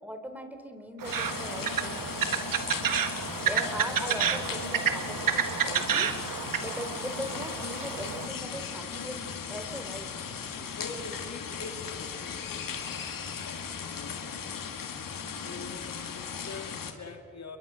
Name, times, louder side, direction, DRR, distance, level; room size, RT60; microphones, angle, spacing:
voice 1, 0.0-2.0 3.4-6.1 6.6-10.1 15.2-15.6, equal, 5° right, 6 dB, 3.6 m, -40 dB
sound 1, 1.0-16.9, left 7 dB, 70° left, 2.1 m, -37 dB
sound 2, 1.0-8.3, right 8 dB, 70° right, 1.5 m, -30 dB
voice 2, 10.8-13.0 13.3-13.4 13.7-14.5 15.4-17.6, left 3 dB, 50° left, 5 dB, 2.3 m, -44 dB
29.5 x 22.5 x 6.2 m, 2.5 s
cardioid pair, 55°, 34 cm